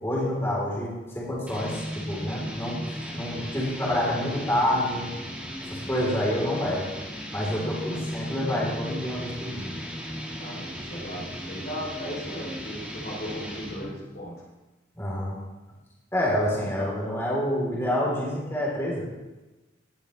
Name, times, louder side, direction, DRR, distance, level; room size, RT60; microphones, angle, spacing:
voice 1, 0.0-2.8 3.1-5.1 5.6-6.9 7.3-9.7 15.0-15.3 16.1-19.0, left 1 dB, 15° left, -4 dB, 3.5 m, -28 dB
sound 1, 1.5-14.0, equal, 5° right, 1.7 m, -36 dB
voice 2, 10.4-14.4, equal, 50° left, -3 dB, 3.1 m, -37 dB
17.5 x 12.0 x 3.3 m, 1.1 s
head